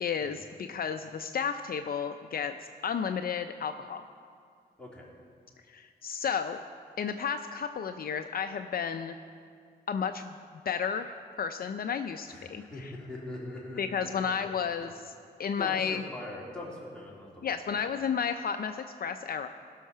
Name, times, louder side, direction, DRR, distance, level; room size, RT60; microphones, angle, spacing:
voice 1, 0.0-2.5 2.8-4.0 5.7-6.6 7.0-9.2 9.9-10.4 10.7-12.9 13.8-14.9 15.4-16.0 17.4-19.5, left 7 dB, 60° left, 8 dB, 0.6 m, -32 dB
voice 2, 12.3-14.5 14.8-14.9 15.6-17.8, left 1 dB, 5° left, -5 dB, 3.6 m, -42 dB
17.0 x 6.5 x 5.7 m, 2.2 s
cardioid pair, 70°, 17 cm